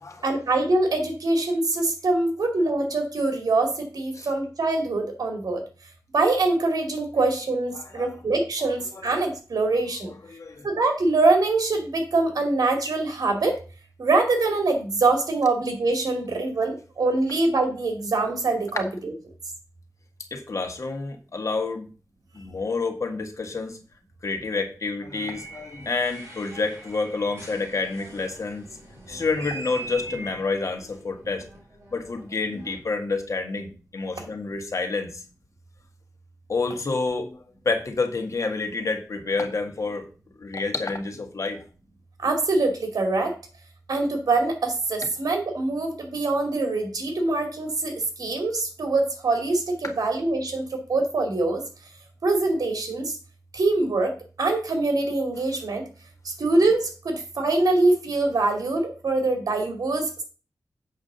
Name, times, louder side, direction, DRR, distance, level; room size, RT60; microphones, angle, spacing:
voice 1, 0.2-5.6 6.1-10.1 10.6-13.6 14.0-19.1 42.2-43.3 43.9-51.6 52.2-53.2 53.5-55.8 56.2-60.2, right 2 dB, 75° right, 4 dB, 2.5 m, -24 dB
voice 2, 7.8-8.1 8.9-9.0 10.3-10.7 20.3-21.9 22.3-23.8 24.2-28.6 29.1-31.5 31.9-35.2 36.5-40.1 40.4-41.6, left 3 dB, 55° left, 5 dB, 1.6 m, -28 dB
sound 1, 25.1-32.8, right 2 dB, 45° right, 5.4 m, -42 dB
8.0 x 4.8 x 6.8 m, 0.36 s
wide cardioid pair, 95°, 6 cm